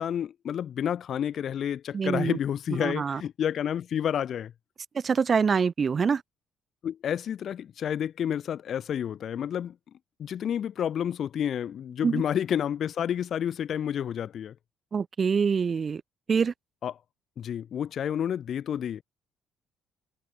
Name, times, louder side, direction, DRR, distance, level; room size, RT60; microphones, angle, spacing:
voice 1, 0.0-4.5 6.8-9.8 10.2-14.5 16.8-16.9 17.4-19.0, left 9 dB, 55° left, 2.2 m, -30 dB
voice 2, 1.9-2.4 2.8-3.2 4.9-6.2 12.0-12.2 14.9-16.0 16.3-16.5, right 6 dB, 35° right, 1.4 m, -25 dB
cardioid pair, 105°, 0 cm